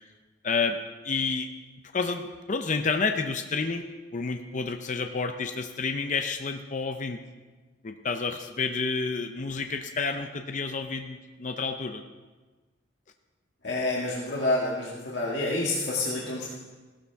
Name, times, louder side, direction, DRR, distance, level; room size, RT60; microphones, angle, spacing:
voice 1, 0.4-0.8 1.0-1.5 1.9-7.2 7.8-12.0, left 4 dB, 40° left, 6 dB, 0.6 m, -30 dB
voice 2, 13.6-16.5, left 2 dB, 70° left, -5 dB, 1.9 m, -28 dB
16.0 x 12.5 x 3.5 m, 1.3 s
head